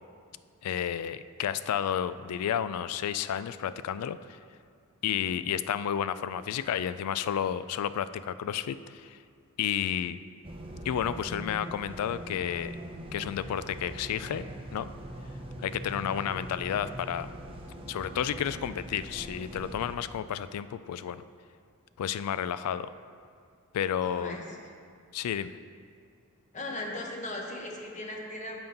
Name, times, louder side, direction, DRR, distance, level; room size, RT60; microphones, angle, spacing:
voice 1, 0.6-4.4 5.0-9.2 9.6-10.2 10.9-12.7 13.1-14.5 14.7-14.9 15.6-17.3 17.9-21.2 22.0-22.9 23.7-24.4 25.1-25.5, left 9 dB, 90° left, 15 dB, 0.3 m, -31 dB
sound 1, 10.4-20.0, right 1 dB, 25° right, 0.6 m, -42 dB
voice 2, 24.0-24.6 26.5-28.6, left 1 dB, 35° left, 0 dB, 1.0 m, -38 dB
6.9 x 5.7 x 5.4 m, 2.2 s
head